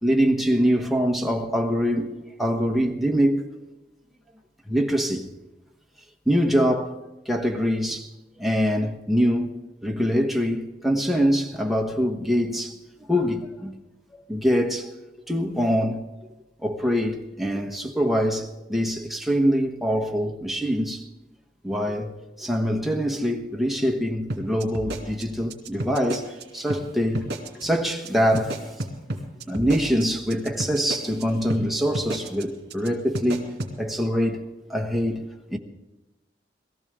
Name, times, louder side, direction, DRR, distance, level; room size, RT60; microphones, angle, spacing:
voice 1, 0.0-3.4 4.7-5.3 6.3-7.0 7.2-8.1 8.4-9.5 9.8-13.8 14.1-14.9 15.3-16.1 16.6-21.0 21.6-27.3 27.5-28.6 29.5-34.4 34.7-35.6, equal, ahead, 1.3 m, -24 dB
sound 1, 24.3-26.4 26.7-26.8 27.1-27.6 27.9-28.1 28.3-31.2 31.5-31.6 31.9-32.4 32.7-32.9 33.1-33.7, right 1 dB, 65° right, 2.7 m, -31 dB
21.5 x 14.5 x 3.7 m
head